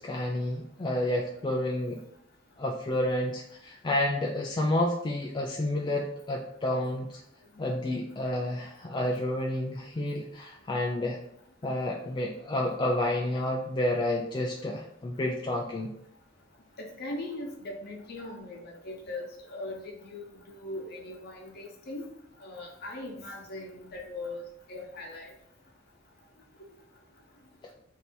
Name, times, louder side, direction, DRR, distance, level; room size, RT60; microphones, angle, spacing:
voice 1, 0.0-2.0 2.6-7.2 7.6-11.2 11.6-15.9, left 1 dB, 25° left, -1 dB, 0.3 m, -30 dB
voice 2, 16.8-22.0 22.4-24.4 24.7-25.3, left 2 dB, 55° left, 0 dB, 1.0 m, -40 dB
3.3 x 2.7 x 4.3 m, 0.75 s
head